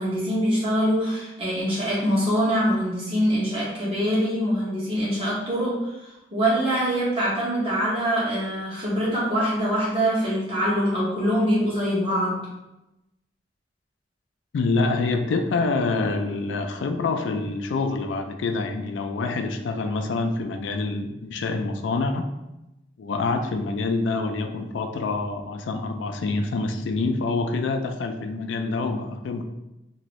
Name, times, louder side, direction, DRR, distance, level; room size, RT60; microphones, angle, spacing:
voice 1, 0.0-12.4, equal, 30° right, -8 dB, 1.2 m, -24 dB
voice 2, 14.5-22.3 23.0-29.4, left 3 dB, 85° left, 5 dB, 0.3 m, -26 dB
2.9 x 2.6 x 3.0 m, 0.94 s
head